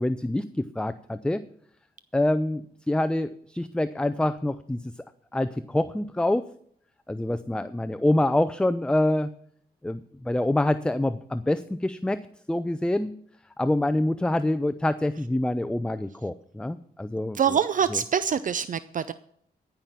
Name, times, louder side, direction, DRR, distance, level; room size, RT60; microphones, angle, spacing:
voice 1, 0.0-1.4 2.1-4.9 5.3-6.5 7.1-9.3 9.8-12.2 12.5-13.1 13.6-17.6 17.9-18.0, left 1 dB, 5° left, 11 dB, 0.4 m, -26 dB
voice 2, 17.4-19.1, right 7 dB, 55° right, 14 dB, 0.5 m, -25 dB
14.5 x 5.8 x 7.5 m, 0.65 s
cardioid pair, 85°, 16 cm